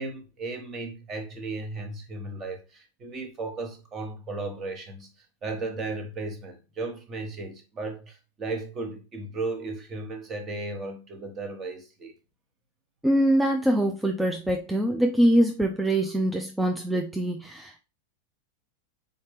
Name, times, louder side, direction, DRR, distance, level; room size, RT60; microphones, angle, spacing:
voice 1, 0.0-12.1, right 3 dB, 25° right, 1.2 m, -35 dB
voice 2, 13.0-17.8, right 1 dB, 5° right, 0.5 m, -23 dB
4.2 x 3.8 x 3.3 m
figure-of-eight pair, 90°, 0 cm